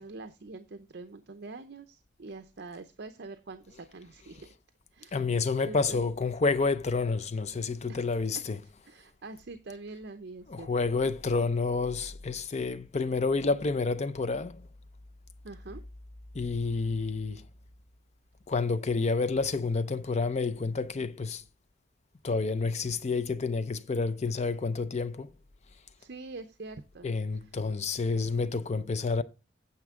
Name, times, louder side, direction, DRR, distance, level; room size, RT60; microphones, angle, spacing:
voice 1, 0.0-4.5 4.9-5.2 5.6-6.0 7.9-8.0 8.8-10.7 15.4-15.8 26.0-27.1, right 3 dB, 60° right, 0.7 m, -44 dB
voice 2, 5.1-8.6 10.5-14.7 16.3-17.5 18.5-21.4 22.2-25.3 27.0-29.2, left 4 dB, 35° left, 0.5 m, -29 dB
9.5 x 7.4 x 3.7 m
head